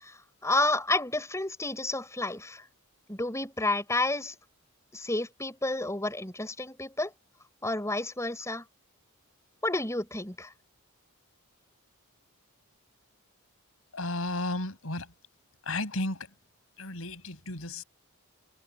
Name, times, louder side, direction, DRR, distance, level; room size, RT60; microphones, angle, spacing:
voice 1, 0.0-2.6 3.1-4.3 4.9-7.1 7.6-8.6 9.6-10.5, left 2 dB, 15° left, 5.3 m, -30 dB
voice 2, 13.9-15.1 15.7-16.2 16.8-17.8, left 2 dB, 70° left, 6.0 m, -33 dB
head